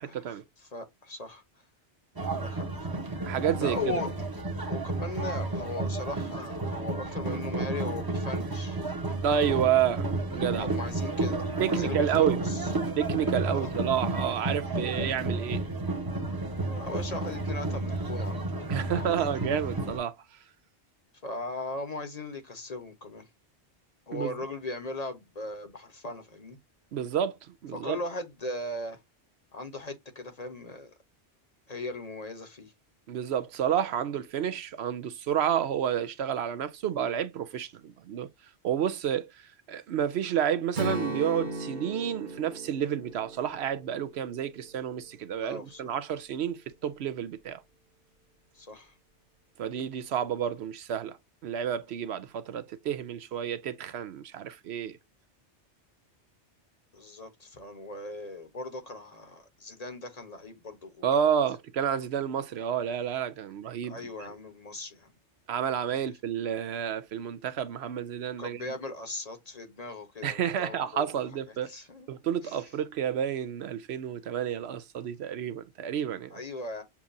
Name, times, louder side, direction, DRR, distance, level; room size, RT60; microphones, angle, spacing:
voice 1, 0.0-0.4 3.3-4.0 9.2-10.7 11.6-12.4 13.0-15.6 18.7-20.1 24.1-24.3 26.9-28.0 33.1-38.3 38.6-39.3 39.7-47.6 49.6-51.2 51.4-55.0 61.0-64.3 65.5-68.7 70.2-71.7 72.1-76.3, right 9 dB, 70° right, 0.8 m, -30 dB
voice 2, 0.6-1.4 2.3-3.0 3.6-4.1 4.7-8.8 10.6-12.7 13.4-13.7 16.7-19.2 21.2-23.3 24.1-26.6 27.7-29.0 29.5-30.9 31.7-32.7 45.4-45.8 48.5-48.9 56.9-61.0 63.8-65.1 65.9-66.1 68.4-71.2 71.5-72.1 72.4-72.6 76.3-76.8, left 2 dB, 35° left, 0.9 m, -38 dB
sound 1, 2.2-20.0, right 2 dB, 20° right, 0.9 m, -32 dB
Strum, 40.7-44.9, right 2 dB, 45° right, 1.1 m, -36 dB
7.1 x 2.4 x 2.5 m
omnidirectional pair, 1.2 m